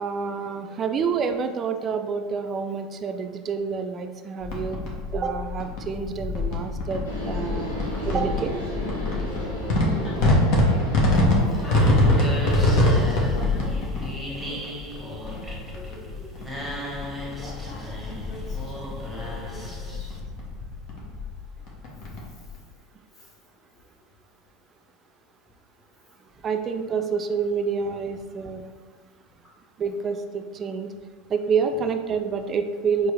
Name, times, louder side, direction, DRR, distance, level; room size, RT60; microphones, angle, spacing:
voice 1, 0.0-4.8 5.1-7.7 8.0-8.5 26.4-28.6 29.8-30.9 31.3-33.1, right 5 dB, 35° right, 7 dB, 0.4 m, -28 dB
sound 1, 4.4-22.6, left 1 dB, 60° left, 1.0 m, -25 dB
sound 2, 7.0-12.8, equal, 90° left, 1.2 m, -34 dB
voice 2, 10.0-10.8 11.6-12.3 12.7-13.2 13.5-13.9 14.4-14.7 15.0-16.3 17.4-17.9 18.3-18.4 19.1-20.1 31.7-31.8, left 1 dB, 25° left, -6 dB, 0.8 m, -43 dB
sound 3, 11.1-20.2, equal, 5° right, 1.0 m, -36 dB
4.6 x 2.6 x 3.3 m, 1.4 s
hypercardioid pair, 85°, 0 cm